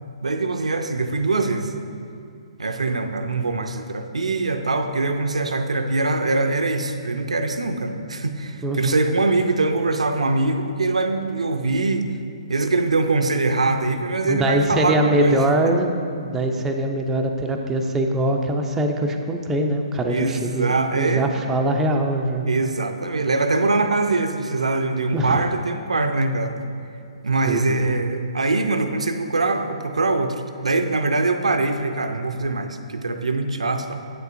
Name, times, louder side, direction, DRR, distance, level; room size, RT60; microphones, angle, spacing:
voice 1, 0.2-1.7 2.6-12.1 12.5-15.8 20.1-21.3 22.4-26.6 27.2-34.0, right 3 dB, 85° right, 7 dB, 0.4 m, -23 dB
voice 2, 8.6-9.0 14.2-15.9 16.2-22.5 25.1-25.4 27.4-27.9, right 1 dB, 10° right, 2 dB, 0.4 m, -22 dB
8.2 x 6.6 x 2.6 m, 2.4 s
figure-of-eight pair, 130°, 3 cm